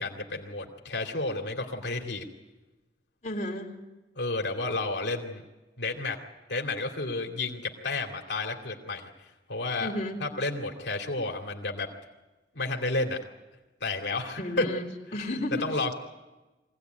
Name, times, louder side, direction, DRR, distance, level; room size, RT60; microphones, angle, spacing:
voice 1, 0.0-2.2 4.2-5.4 5.8-6.2 6.5-9.1 9.5-9.9 10.2-11.9 12.5-13.2 13.8-14.7 15.6-15.9, left 3 dB, 80° left, 1 dB, 2.5 m, -31 dB
voice 2, 3.2-3.7 9.8-10.2 14.4-15.7, left 1 dB, 40° left, -5 dB, 3.6 m, -33 dB
24.0 x 17.0 x 9.3 m, 1.1 s
head